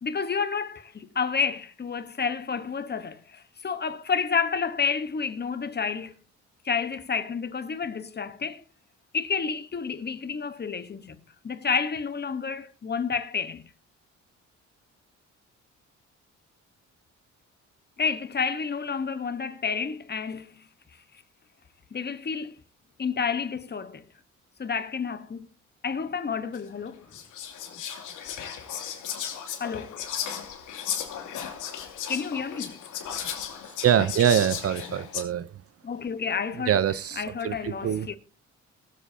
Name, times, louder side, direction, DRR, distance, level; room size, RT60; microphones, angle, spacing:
voice 1, 0.0-6.1 6.6-8.6 9.1-11.2 11.4-13.6 18.0-20.6 21.9-22.6 23.0-24.0 24.6-25.5 25.8-27.0 29.6-30.0 32.1-32.8 35.8-36.7 37.2-38.2, left 6 dB, 35° left, 1.2 m, -30 dB
Whispering, 26.5-26.6 27.1-35.2, left 8 dB, 80° left, 2.8 m, -35 dB
voice 2, 33.8-35.5 36.6-38.1, right 9 dB, 50° right, 0.7 m, -24 dB
23.0 x 8.1 x 2.8 m
cardioid pair, 90°, 30 cm